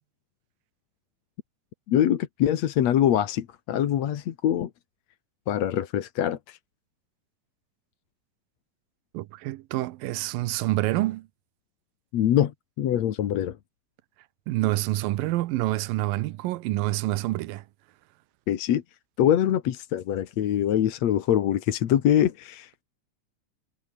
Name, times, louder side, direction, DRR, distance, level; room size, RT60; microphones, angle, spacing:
voice 1, 1.9-4.7 5.5-6.6 12.1-12.5 12.8-13.6 18.5-18.8 19.2-22.8, left 10 dB, 60° left, 2.3 m, -24 dB
voice 2, 9.1-11.3 14.5-17.6, right 17 dB, 85° right, 2.5 m, -27 dB
omnidirectional pair, 4.1 m